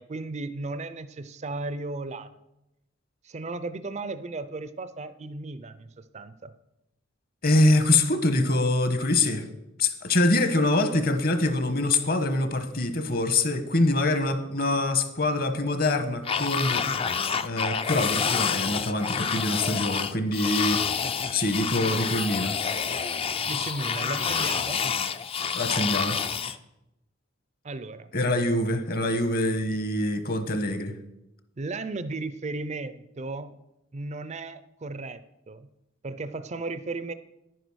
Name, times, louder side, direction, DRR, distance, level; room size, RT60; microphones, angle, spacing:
voice 1, 0.0-2.3 3.2-6.5 23.5-24.8 27.6-28.1 31.6-33.6 33.9-35.7 36.0-37.1, right 3 dB, 35° right, 12 dB, 0.5 m, -35 dB
voice 2, 7.4-9.4 9.8-16.9 17.4-20.8 21.3-22.6 25.5-26.2 28.1-30.9, left 2 dB, 50° left, 9 dB, 1.2 m, -24 dB
sound 1, 16.2-26.6, left 6 dB, 30° left, 0.4 m, -28 dB
10.0 x 9.2 x 6.2 m, 0.91 s
head